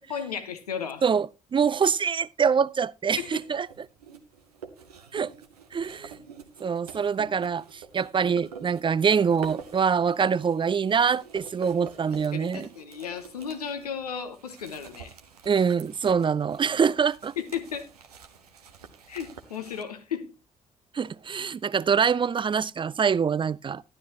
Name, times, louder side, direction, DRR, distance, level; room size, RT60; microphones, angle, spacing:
voice 1, 0.1-1.1 3.2-3.4 12.3-15.1 17.4-17.9 19.1-20.3, left 7 dB, 85° left, 0.9 m, -34 dB
voice 2, 1.0-3.7 5.1-5.3 5.7-6.1 6.6-12.7 15.5-17.3 20.9-23.8, right 6 dB, 25° right, 0.4 m, -25 dB
sound 1, 3.1-19.8, right 6 dB, 85° right, 0.9 m, -47 dB
12.0 x 11.0 x 2.8 m
figure-of-eight pair, 45°, 19 cm